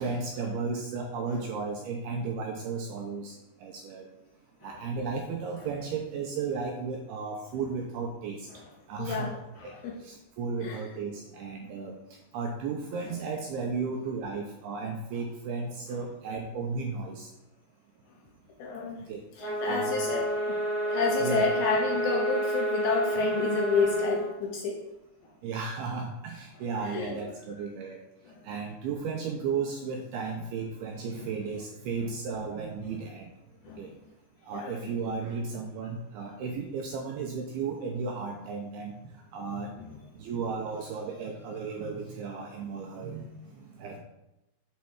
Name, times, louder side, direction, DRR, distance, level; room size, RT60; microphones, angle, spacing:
voice 1, 0.0-3.3 3.6-4.1 4.6-8.5 8.9-12.0 12.3-17.3 19.1-19.2 19.7-19.9 21.2-21.4 25.4-28.0 28.4-33.3 33.8-33.9 34.5-39.0 39.3-39.7 40.2-43.3 43.5-44.0, right 4 dB, 85° right, 1 dB, 2.3 m, -34 dB
voice 2, 9.0-10.0 10.6-10.8 18.6-19.1 19.4-20.6 20.8-24.8 26.9-27.2 31.1-31.3 32.8-32.9 33.6-33.8 34.5-34.7 39.8-39.9, left 4 dB, 80° left, 0 dB, 2.3 m, -30 dB
sound 1, 19.4-24.2, right 1 dB, 55° left, 1.0 m, -29 dB
7.2 x 3.2 x 5.7 m, 0.92 s
omnidirectional pair, 5.1 m